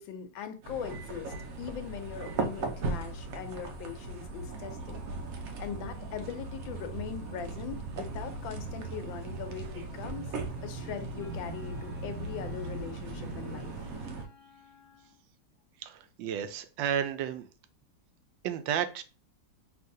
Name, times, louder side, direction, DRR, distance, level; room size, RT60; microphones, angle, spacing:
voice 1, 0.0-5.0 5.6-10.3 10.6-13.9, left 8 dB, 90° left, 1.4 m, -41 dB
sound 1, 0.6-14.2, right 3 dB, 65° right, 0.9 m, -38 dB
Wind instrument woodwind instrument, 10.4-15.2, left 8 dB, 25° right, 0.5 m, -57 dB
voice 2, 15.8-17.5 18.4-19.0, right 9 dB, 80° right, 1.3 m, -32 dB
5.5 x 2.8 x 2.6 m
omnidirectional pair, 2.0 m